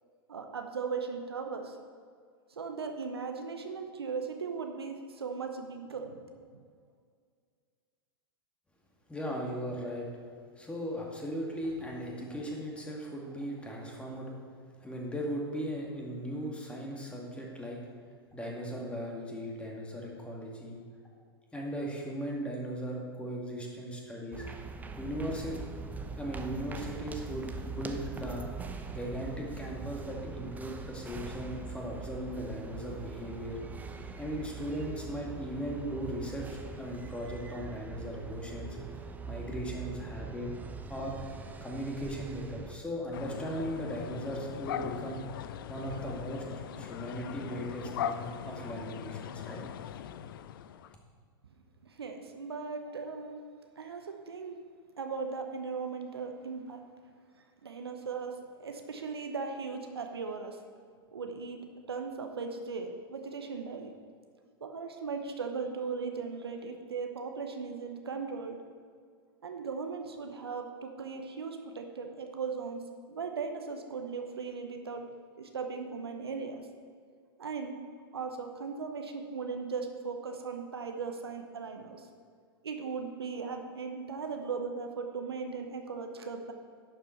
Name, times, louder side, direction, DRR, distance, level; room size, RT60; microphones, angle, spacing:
voice 1, 0.3-1.8 2.5-6.6 51.8-53.4 53.8-54.6 55.0-56.8 57.6-60.6 61.1-61.6 61.9-63.9 64.6-68.6 69.4-72.8 73.1-75.1 75.4-76.6 77.4-77.7 78.1-82.1 82.6-86.5, right 5 dB, 80° right, 5 dB, 1.0 m, -38 dB
voice 2, 9.1-10.1 10.6-14.4 14.8-17.8 18.3-20.8 21.5-24.5 25.0-25.6 26.2-28.5 28.9-33.6 34.2-38.8 39.3-40.5 40.9-41.2 41.6-45.2 45.7-46.4 46.7-49.6, equal, 10° left, -1 dB, 2.2 m, -38 dB
sound 1, 24.3-42.8, right 4 dB, 10° right, 0.7 m, -42 dB
sound 2, 43.1-50.9, left 9 dB, 60° left, 0.5 m, -40 dB
11.5 x 7.9 x 4.5 m, 2.1 s
figure-of-eight pair, 95°, 13 cm